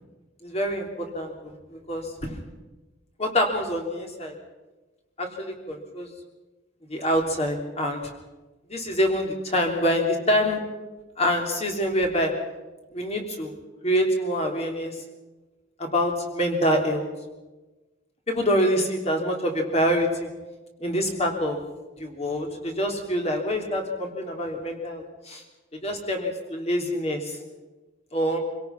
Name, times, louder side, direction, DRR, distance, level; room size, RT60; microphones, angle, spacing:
voice 1, 0.4-2.4 3.2-4.3 5.2-6.1 6.9-8.0 8.7-10.6 11.2-12.3 12.9-13.5 13.8-15.0 15.8-17.1 18.3-20.3 20.8-21.6 22.0-25.4 25.8-27.4 28.1-28.4, equal, 35° left, 2 dB, 3.4 m, -26 dB
26.5 x 17.5 x 5.9 m, 1.2 s
head